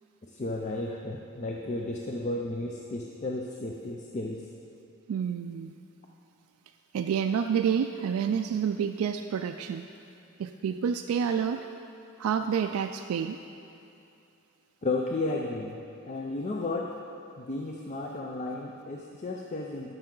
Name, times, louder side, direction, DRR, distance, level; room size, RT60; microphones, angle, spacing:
voice 1, 0.2-4.4 14.8-15.8 16.1-16.9 17.4-19.9, left 2 dB, 35° left, 0 dB, 0.4 m, -33 dB
voice 2, 5.1-5.7 6.9-9.9 10.4-11.7 12.2-13.4, right 7 dB, 75° right, 7 dB, 0.3 m, -28 dB
12.0 x 6.2 x 3.8 m, 2.7 s
head